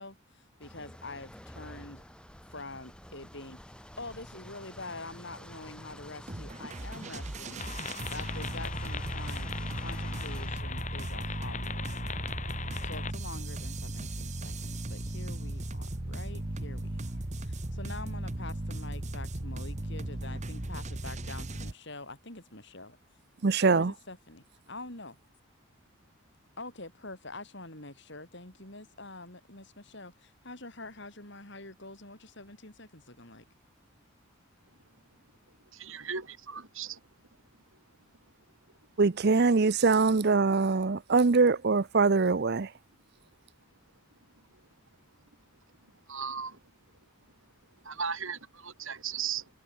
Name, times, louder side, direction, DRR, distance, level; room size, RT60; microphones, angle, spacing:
voice 1, 0.0-2.0 2.5-7.7 8.1-9.5 9.8-12.4 12.8-23.0 23.7-25.2 26.6-33.4, left 2 dB, 55° left, 6.1 m, -45 dB
sound 1, 0.6-10.5, equal, 5° left, 4.6 m, -49 dB
sound 2, 6.3-21.7, right 1 dB, 35° right, 1.3 m, -37 dB
sound 3, 7.6-13.1, left 6 dB, 35° left, 1.3 m, -40 dB
voice 2, 23.4-23.9 39.0-42.7, right 4 dB, 50° right, 0.6 m, -23 dB
voice 3, 35.7-37.0 46.1-46.6 47.8-49.5, right 6 dB, 65° right, 6.4 m, -36 dB
head